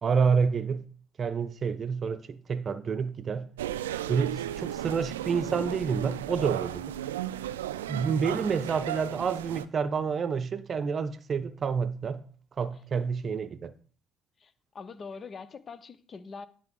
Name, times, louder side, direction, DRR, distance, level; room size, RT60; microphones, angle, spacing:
voice 1, 0.0-0.8 1.2-3.5 4.1-6.9 7.9-12.2 12.6-13.7, right 6 dB, 45° right, 0.7 m, -28 dB
sound 1, 3.6-9.6, right 12 dB, 85° right, 0.4 m, -34 dB
voice 2, 14.4-16.5, left 5 dB, 40° left, 0.9 m, -43 dB
10.5 x 4.6 x 3.8 m
hypercardioid pair, 60°, 0 cm